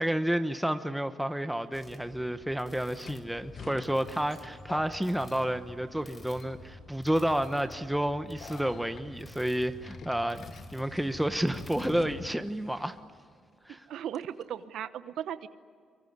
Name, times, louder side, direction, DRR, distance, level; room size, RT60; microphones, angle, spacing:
voice 1, 0.0-10.4 10.7-13.0 13.6-13.9, right 1 dB, 5° right, 9 dB, 1.1 m, -30 dB
sound 1, 1.7-1.8 3.0-6.0 6.3-6.8 7.4-7.7 8.4-9.0 9.8-12.6 12.8-12.9 14.1-14.4, left 6 dB, 60° left, 1.6 m, -47 dB
sound 2, 1.7-12.3, left 1 dB, 25° left, 4.8 m, -49 dB
voice 2, 13.9-15.5, right 10 dB, 75° right, 12 dB, 0.9 m, -36 dB
24.0 x 23.5 x 9.6 m, 2.1 s
cardioid pair, 90°, 0 cm